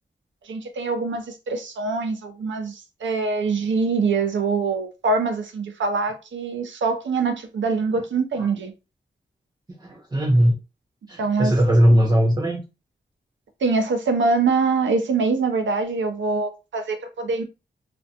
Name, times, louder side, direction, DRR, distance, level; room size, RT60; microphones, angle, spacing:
voice 1, 0.5-8.7 11.2-11.5 13.6-17.4, right 4 dB, 85° right, 0.6 m, -24 dB
voice 2, 9.8-10.5 11.1-12.6, equal, 20° right, 0.5 m, -19 dB
2.4 x 2.1 x 2.7 m
wide cardioid pair, 105°, 19 cm